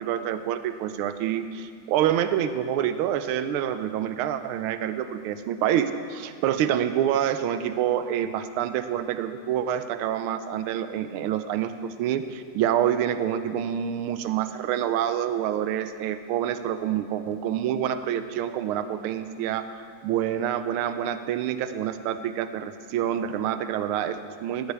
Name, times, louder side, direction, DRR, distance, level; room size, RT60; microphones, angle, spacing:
voice 1, 0.0-24.7, right 10 dB, 85° right, 11 dB, 1.5 m, -27 dB
18.0 x 13.0 x 3.4 m, 2.1 s
omnidirectional pair, 2.3 m